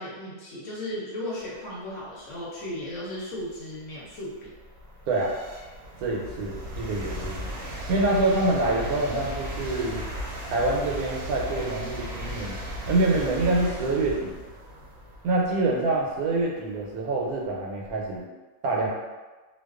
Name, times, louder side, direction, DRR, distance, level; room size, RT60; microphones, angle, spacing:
voice 1, 0.0-4.5, left 1 dB, 65° left, -5 dB, 0.9 m, -35 dB
sound 1, 2.7-2.8 3.4-18.2, equal, 65° right, 0.9 m, -37 dB
voice 2, 6.0-7.5 7.9-10.1 10.5-12.6 12.9-14.4 15.2-18.2 18.6-18.9, right 2 dB, 85° right, -2 dB, 1.1 m, -26 dB
2.4 x 2.3 x 2.3 m, 1.3 s
omnidirectional pair, 1.5 m